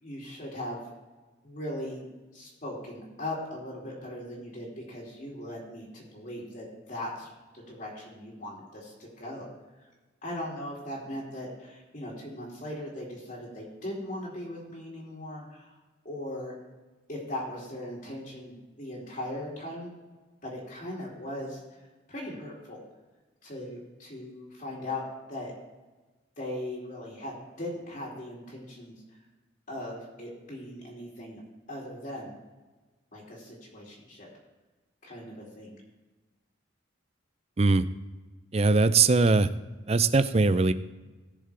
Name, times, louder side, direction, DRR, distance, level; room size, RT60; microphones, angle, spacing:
voice 1, 0.0-0.8 1.4-2.0 2.3-9.5 9.8-9.9 10.2-15.8 16.0-16.5 17.1-19.9 20.4-21.6 22.1-22.8 23.4-25.5 26.4-29.2 29.7-31.4 31.7-32.3 33.1-34.3 35.0-35.8, left 1 dB, 40° left, -5 dB, 2.8 m, -39 dB
voice 2, 38.5-39.5 39.9-40.7, right 3 dB, 30° right, 13 dB, 0.5 m, -21 dB
19.0 x 6.7 x 3.4 m, 1.2 s
head